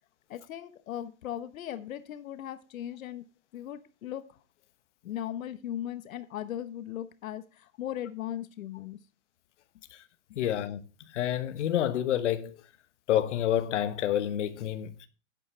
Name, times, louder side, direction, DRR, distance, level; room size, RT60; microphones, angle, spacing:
voice 1, 0.3-3.2 3.5-4.4 5.0-9.0, left 11 dB, 85° left, 1.1 m, -38 dB
voice 2, 10.4-10.8 11.1-12.6 13.1-15.1, left 11 dB, 60° left, 1.2 m, -28 dB
12.0 x 8.8 x 3.3 m
supercardioid pair, 175°, 40 cm